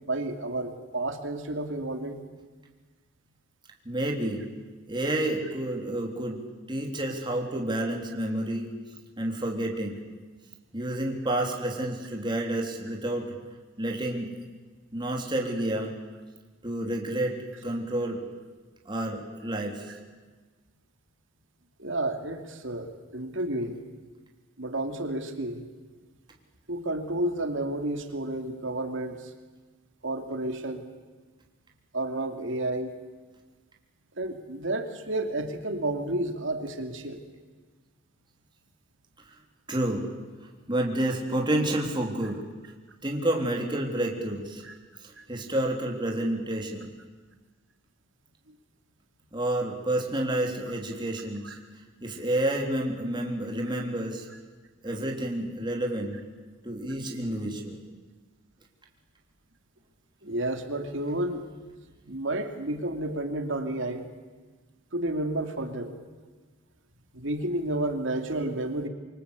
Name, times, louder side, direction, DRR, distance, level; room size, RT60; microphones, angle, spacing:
voice 1, 0.1-2.2 21.8-23.8 24.6-25.6 26.7-29.3 30.0-30.9 31.9-33.0 34.2-37.2 44.6-44.7 45.2-45.3 51.4-51.6 60.2-61.4 62.1-64.1 64.9-65.9 67.1-68.9, right 1 dB, 65° right, 6 dB, 2.7 m, -31 dB
voice 2, 3.8-4.5 4.9-8.7 9.2-10.0 10.7-13.3 13.8-14.3 14.9-16.0 16.6-18.2 18.9-20.0 39.3-39.4 39.7-40.0 40.7-42.4 43.0-44.6 45.0-46.9 49.3-51.6 52.0-54.3 54.8-56.2 56.6-57.8, right 1 dB, 20° right, 0 dB, 3.7 m, -29 dB
27.0 x 24.5 x 8.4 m, 1.4 s
head